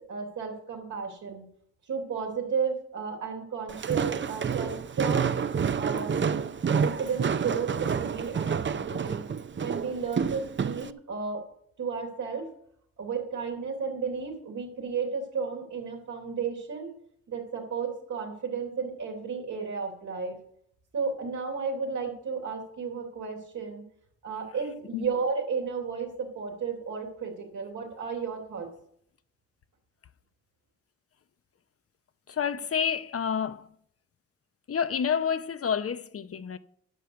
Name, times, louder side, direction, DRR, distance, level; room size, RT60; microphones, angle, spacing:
voice 1, 0.1-1.5 1.9-5.3 5.7-6.4 6.7-9.3 9.6-11.4 11.8-12.5 13.0-17.0 17.3-20.4 20.9-23.8 24.2-28.7, right 5 dB, 85° right, 3.4 m, -33 dB
Walk footsteps, 3.7-10.9, right 6 dB, 40° right, 0.6 m, -29 dB
voice 2, 32.3-33.7 34.7-36.6, left 7 dB, 50° left, 0.7 m, -29 dB
11.0 x 6.4 x 7.0 m
cardioid pair, 55°, 29 cm